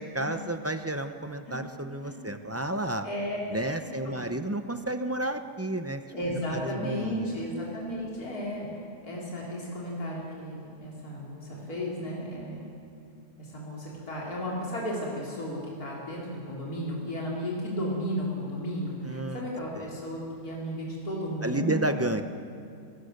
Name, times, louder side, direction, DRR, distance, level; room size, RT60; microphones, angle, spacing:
voice 1, 0.0-3.1 3.5-6.0 6.5-7.2 19.0-19.5 19.7-19.9 21.4-22.2, right 1 dB, 25° right, 8 dB, 0.3 m, -31 dB
voice 2, 3.0-3.4 3.8-4.1 6.1-12.7 13.4-21.8, equal, 70° left, -4 dB, 4.0 m, -34 dB
28.5 x 16.5 x 6.6 m, 2.4 s
omnidirectional pair, 1.6 m